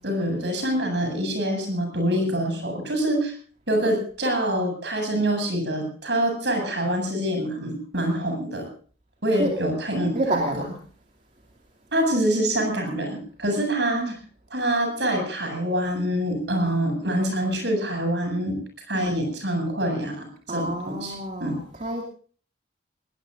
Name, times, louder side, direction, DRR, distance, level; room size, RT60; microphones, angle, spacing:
voice 1, 0.0-3.4 3.7-8.7 9.2-10.2 11.9-14.1 14.5-18.6 18.9-21.1 21.4-21.5, right 1 dB, 75° right, 4 dB, 8.0 m, -25 dB
voice 2, 10.1-10.8 13.9-14.2 18.9-19.1 20.5-22.0, right 1 dB, 45° right, 0 dB, 2.8 m, -29 dB
21.0 x 19.5 x 2.7 m, 0.43 s
head